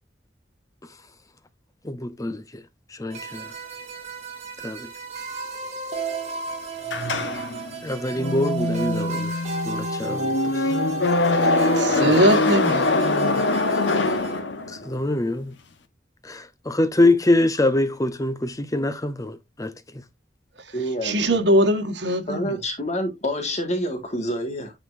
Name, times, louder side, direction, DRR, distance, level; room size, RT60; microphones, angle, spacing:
voice 1, 1.8-2.6 3.0-3.4 4.6-4.9 7.8-9.3 9.6-10.7 14.7-15.5 16.2-20.0, left 2 dB, 20° left, 0.7 m, -24 dB
sound 1, 3.1-14.4, right 2 dB, 40° right, 2.4 m, -32 dB
sound 2, 6.9-15.0, left 2 dB, 85° left, 1.1 m, -23 dB
voice 2, 11.7-13.7 20.7-20.8 21.0-22.6, right 1 dB, 75° right, 1.5 m, -22 dB
voice 3, 20.7-21.2 22.3-24.7, equal, 40° left, 1.8 m, -27 dB
9.5 x 4.3 x 2.6 m
head